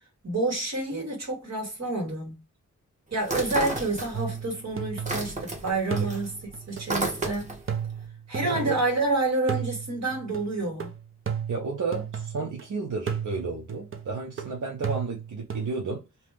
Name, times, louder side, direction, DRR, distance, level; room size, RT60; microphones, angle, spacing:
voice 1, 0.2-2.4 3.1-6.3 6.7-7.6 8.3-10.9, right 2 dB, 60° right, 1.8 m, -28 dB
sound 1, 3.2-4.5 4.8-7.7, right 2 dB, 25° right, 1.0 m, -32 dB
sound 2, 4.1-5.5 5.9-9.1 9.5-12.6 13.1-15.7, right 7 dB, 45° right, 0.6 m, -34 dB
voice 2, 8.4-8.8 11.5-16.0, right 4 dB, 90° right, 0.8 m, -32 dB
2.9 x 2.2 x 3.3 m
wide cardioid pair, 115°, 30 cm